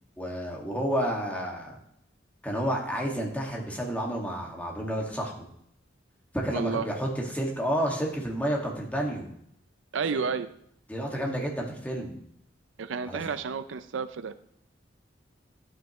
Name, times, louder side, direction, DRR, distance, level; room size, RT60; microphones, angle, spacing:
voice 1, 0.2-1.7 2.4-5.4 6.3-9.3 10.1-10.2 10.9-12.2 13.1-13.2, equal, 10° left, -1 dB, 1.9 m, -30 dB
voice 2, 6.5-6.9 9.9-10.5 12.8-14.3, right 5 dB, 80° right, 12 dB, 0.5 m, -31 dB
11.5 x 9.0 x 3.1 m, 0.69 s
head